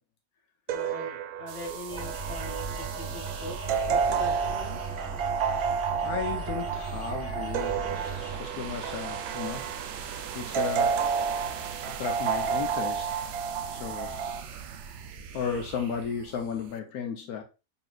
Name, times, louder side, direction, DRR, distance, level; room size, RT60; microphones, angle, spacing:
voice 1, 0.7-3.6 3.8-4.9, left 2 dB, 45° left, 2.2 m, -42 dB
sound 1, 0.7-14.4, right 6 dB, 90° right, 1.1 m, -31 dB
sound 2, 1.5-16.8, right 7 dB, 65° right, 0.8 m, -42 dB
sound 3, 1.9-8.4, right 4 dB, 10° right, 0.9 m, -37 dB
voice 2, 6.0-9.7 10.3-11.0 11.3-11.5 12.0-13.1 13.7-14.2 15.3-17.4, left 7 dB, 90° left, 1.2 m, -34 dB
6.9 x 3.1 x 2.4 m
omnidirectional pair, 1.5 m